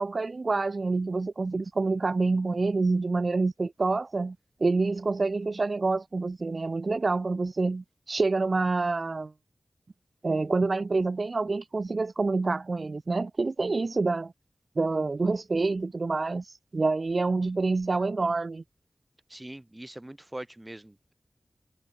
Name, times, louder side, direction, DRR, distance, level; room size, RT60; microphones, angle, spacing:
voice 1, 0.0-4.4 4.6-9.3 10.2-14.3 14.8-18.6, right 3 dB, 50° right, 1.8 m, -27 dB
voice 2, 19.3-21.1, right 1 dB, 15° right, 6.2 m, -42 dB
wide cardioid pair, 95°, 0 cm